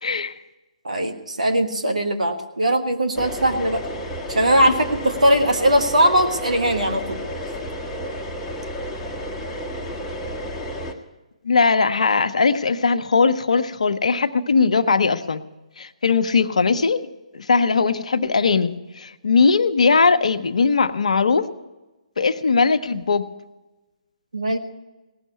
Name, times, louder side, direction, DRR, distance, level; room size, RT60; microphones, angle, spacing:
voice 1, 0.0-0.3 4.7-4.8 11.4-15.4 15.8-17.0 17.3-21.5 22.2-23.3, left 4 dB, 75° left, 10 dB, 0.8 m, -19 dB
voice 2, 0.8-3.8 4.3-4.8 5.0-7.2 24.3-24.6, equal, 85° right, 6 dB, 1.6 m, -20 dB
sound 1, 3.1-10.9, equal, 10° left, 1.4 m, -31 dB
18.0 x 6.4 x 9.6 m, 1.1 s
hypercardioid pair, 140°, 4 cm